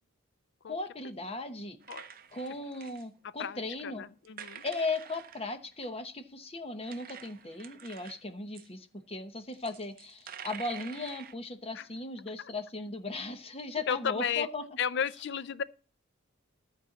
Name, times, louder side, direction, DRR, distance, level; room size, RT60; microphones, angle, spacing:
voice 1, 0.7-1.8 2.3-4.1 4.6-14.6, left 2 dB, 25° left, 1.0 m, -37 dB
sound 1, 1.8-3.0 4.2-6.0 6.8-8.2 8.5-8.7 9.5-11.3, right 8 dB, 40° right, 0.7 m, -48 dB
voice 2, 3.4-4.6 11.7-11.9 12.4-12.5 13.9-14.5 14.8-15.6, left 7 dB, 50° left, 0.4 m, -33 dB
13.5 x 4.5 x 7.1 m
head